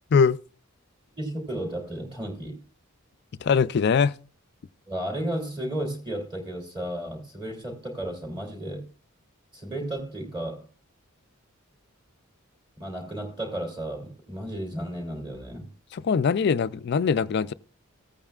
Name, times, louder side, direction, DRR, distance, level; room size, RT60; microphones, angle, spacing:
voice 1, 1.2-2.6 4.9-8.9 9.5-10.7 12.8-15.7, right 1 dB, 20° right, 3.0 m, -33 dB
voice 2, 3.4-4.1 15.9-17.5, left 6 dB, 50° left, 0.4 m, -22 dB
15.5 x 8.8 x 2.4 m
head